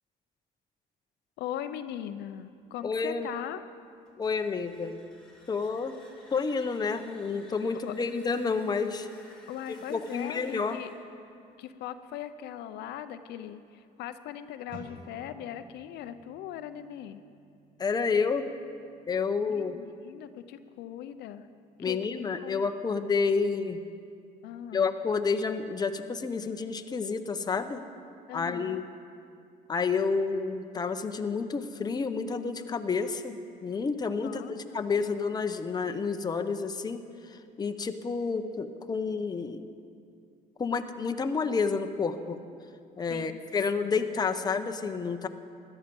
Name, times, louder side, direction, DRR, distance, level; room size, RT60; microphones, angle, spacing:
voice 1, 1.4-3.7 7.7-7.9 9.5-10.9 11.6-17.2 19.4-21.5 21.8-22.6 24.4-24.9 28.3-28.8 34.2-35.1 43.1-43.7, left 10 dB, 80° left, 10 dB, 0.6 m, -40 dB
voice 2, 2.8-3.3 4.2-5.0 5.5-6.0 6.3-9.1 9.9-10.8 17.8-18.5 19.1-19.8 21.8-23.8 24.7-27.8 28.3-28.8 29.7-33.4 33.6-39.7 40.6-42.4 43.0-45.3, left 5 dB, 25° left, 7 dB, 0.8 m, -30 dB
sound 1, 4.1-12.9, left 1 dB, 5° left, 2.7 m, -56 dB
sound 2, 14.7-24.2, right 2 dB, 55° right, 1.9 m, -56 dB
17.0 x 12.0 x 5.3 m, 2.4 s
cardioid pair, 110°, 17 cm